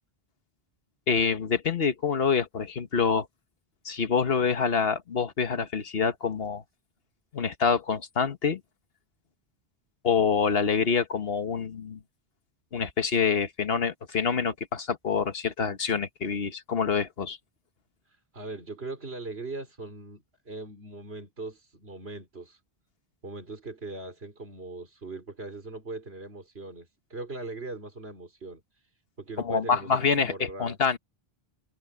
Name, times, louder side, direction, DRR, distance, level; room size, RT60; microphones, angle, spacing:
voice 1, 1.1-3.3 3.8-6.6 7.3-8.6 10.0-12.0 12.7-17.4 29.4-31.0, left 6 dB, 70° left, 1.5 m, -26 dB
voice 2, 18.1-22.6 23.2-28.6 29.2-30.8, right 3 dB, 80° right, 3.9 m, -40 dB
omnidirectional pair, 1.0 m